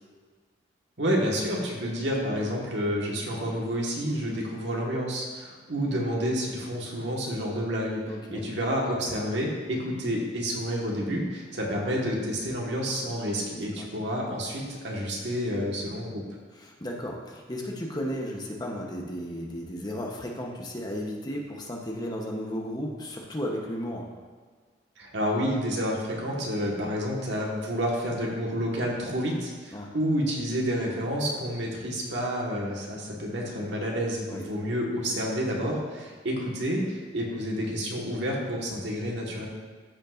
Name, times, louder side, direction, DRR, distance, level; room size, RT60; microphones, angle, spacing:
voice 1, 1.0-8.0 8.3-16.2 25.0-39.5, equal, 75° right, -2 dB, 1.6 m, -29 dB
voice 2, 8.1-8.5 13.5-13.9 16.6-24.1 29.7-29.9 34.3-34.5, equal, 25° left, -1 dB, 1.0 m, -34 dB
13.5 x 5.4 x 2.6 m, 1.5 s
head